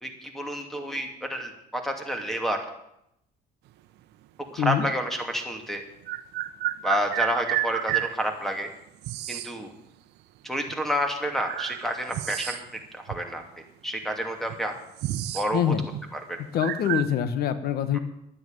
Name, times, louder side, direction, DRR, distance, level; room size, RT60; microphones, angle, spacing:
voice 1, 0.0-2.6 4.5-5.8 6.8-8.7 9.3-9.7 10.4-12.6 12.9-13.4 13.8-14.7 15.3-15.7 16.1-16.4 17.9-18.0, equal, ahead, 4 dB, 2.7 m, -29 dB
sound 1, 4.8-4.9 6.0-8.2 9.0-9.5 10.7-10.8 11.4-12.8 13.1-13.2 14.0-14.1 14.4-15.5 15.8-16.0 16.6-17.1, right 14 dB, 80° right, 0.8 m, -30 dB
voice 2, 15.5-15.8 16.5-18.0, left 9 dB, 70° left, 12 dB, 1.3 m, -24 dB
11.5 x 9.6 x 9.0 m, 0.79 s
cardioid pair, 110°, 17 cm